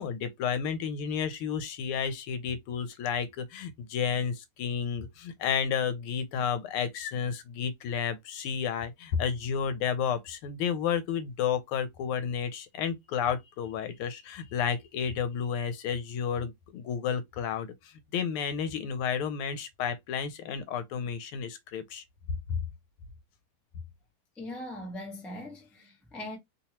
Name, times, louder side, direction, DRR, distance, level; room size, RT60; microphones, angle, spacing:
voice 1, 0.0-17.7 18.1-22.0 22.5-22.6, left 7 dB, 85° left, 1.5 m, -31 dB
voice 2, 24.4-26.4, left 1 dB, ahead, 0.4 m, -40 dB
3.5 x 2.9 x 2.8 m
omnidirectional pair, 2.4 m